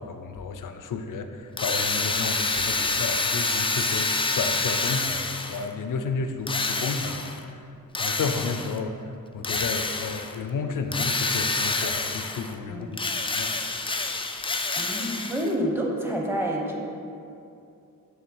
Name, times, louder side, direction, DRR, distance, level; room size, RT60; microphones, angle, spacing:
voice 1, 0.0-7.6 8.0-9.0 9.3-13.5, left 4 dB, 65° left, 7 dB, 0.6 m, -32 dB
Drill, 1.6-5.7 6.5-7.4 7.9-8.8 9.4-10.3 10.9-12.5 12.9-15.5, left 3 dB, 15° left, 0.3 m, -27 dB
voice 2, 12.7-13.0 14.8-16.8, equal, 5° right, -1 dB, 1.0 m, -28 dB
7.3 x 3.3 x 6.2 m, 2.6 s
wide cardioid pair, 110°, 34 cm